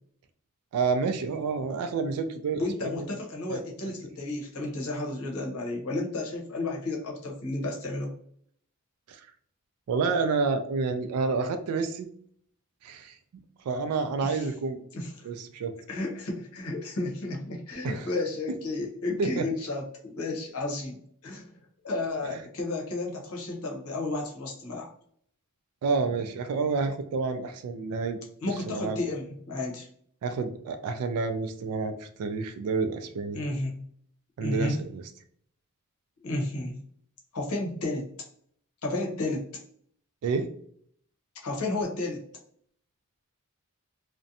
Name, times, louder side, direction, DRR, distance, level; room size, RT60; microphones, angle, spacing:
voice 1, 0.7-3.1 3.5-3.9 9.1-9.2 9.9-12.1 12.8-13.2 13.7-14.8 15.2-15.7 17.8-18.1 19.2-19.5 25.8-28.2 28.4-29.0 30.2-33.4 34.4-35.0 40.2-40.5, right 4 dB, 80° right, 8 dB, 0.3 m, -29 dB
voice 2, 2.6-8.1 14.2-14.5 14.9-15.3 15.9-21.5 21.8-24.9 28.4-29.9 33.3-33.8 34.4-34.8 36.2-36.8 37.3-38.1 38.8-39.5 41.4-42.2, left 2 dB, 75° left, -1 dB, 0.8 m, -32 dB
2.5 x 2.1 x 2.6 m, 0.63 s
head